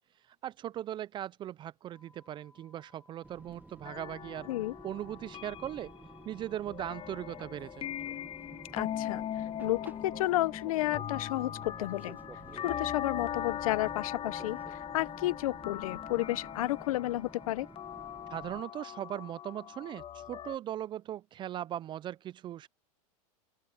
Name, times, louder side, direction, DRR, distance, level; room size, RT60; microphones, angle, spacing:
voice 1, 0.4-4.5 4.8-5.9 6.3-7.9 18.3-22.7, right 11 dB, 25° right, 0.3 m, -39 dB
sound 1, 1.9-20.2, left 2 dB, 10° left, 4.8 m, -63 dB
Fixed-wing aircraft airplane, 3.2-18.6, right 3 dB, 10° right, 1.3 m, -52 dB
sound 2, 3.9-20.6, left 10 dB, 30° left, 1.2 m, -40 dB
voice 2, 8.7-9.2 9.6-12.2 12.5-17.7, left 16 dB, 75° left, 0.9 m, -32 dB
open air
hypercardioid pair, 115°, 18 cm